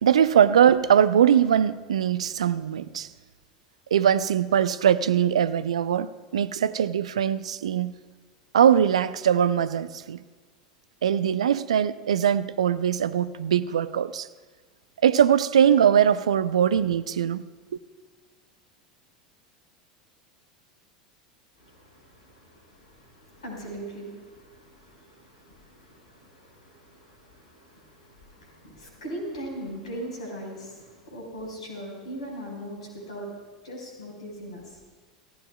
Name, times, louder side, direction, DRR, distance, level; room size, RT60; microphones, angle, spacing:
voice 1, 0.0-3.1 3.9-7.9 8.5-10.2 11.0-14.3 15.0-17.4, right 9 dB, 70° right, 0.5 m, -21 dB
voice 2, 21.6-33.3 33.6-34.8, right 1 dB, 70° left, 4.8 m, -40 dB
28.5 x 15.0 x 2.3 m
figure-of-eight pair, 80°, 3 cm